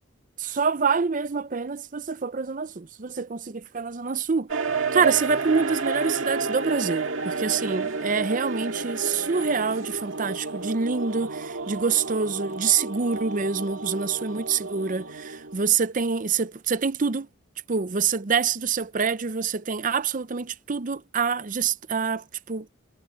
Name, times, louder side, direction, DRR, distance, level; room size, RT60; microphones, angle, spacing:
voice 1, 0.4-4.5 4.9-17.3 17.7-22.7, right 5 dB, 40° right, 0.6 m, -26 dB
sound 1, 4.5-15.8, right 4 dB, 90° right, 1.9 m, -31 dB
head